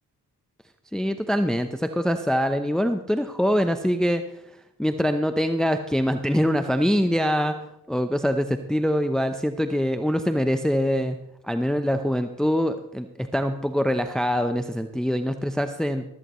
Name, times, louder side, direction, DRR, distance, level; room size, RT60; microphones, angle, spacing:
voice 1, 0.9-4.2 4.8-7.5 7.9-11.2 11.4-16.1, equal, ahead, 8 dB, 0.8 m, -24 dB
15.0 x 13.5 x 3.1 m, 0.83 s
cardioid pair, 60°, 37 cm